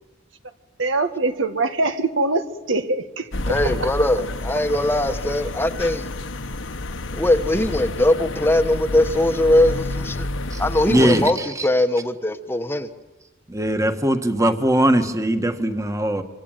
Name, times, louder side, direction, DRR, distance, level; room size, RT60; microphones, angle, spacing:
voice 1, 0.8-3.9, right 3 dB, 80° right, 1.8 m, -23 dB
sound 1, 3.3-11.3, left 2 dB, 80° left, 1.4 m, -29 dB
voice 2, 3.5-6.1 7.1-10.3 10.6-11.4 11.6-12.9, left 1 dB, 10° left, 1.1 m, -20 dB
voice 3, 10.9-11.7 13.5-16.2, right 1 dB, 15° right, 1.6 m, -20 dB
25.5 x 25.0 x 9.1 m
head